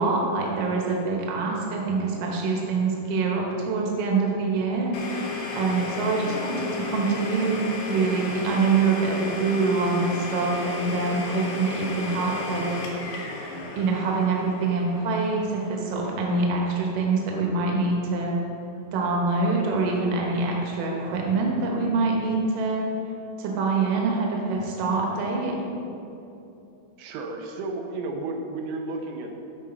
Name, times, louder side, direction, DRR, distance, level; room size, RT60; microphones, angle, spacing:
voice 1, 0.0-4.9 5.5-12.8 13.8-18.3 18.9-22.9 23.4-25.6, right 3 dB, 65° right, -1 dB, 2.6 m, -25 dB
Domestic sounds home sounds, 4.9-16.6, left 4 dB, 85° left, 3.3 m, -34 dB
voice 2, 27.0-29.4, right 2 dB, 90° right, 2 dB, 2.9 m, -33 dB
12.5 x 5.0 x 4.4 m, 2.8 s
omnidirectional pair, 4.6 m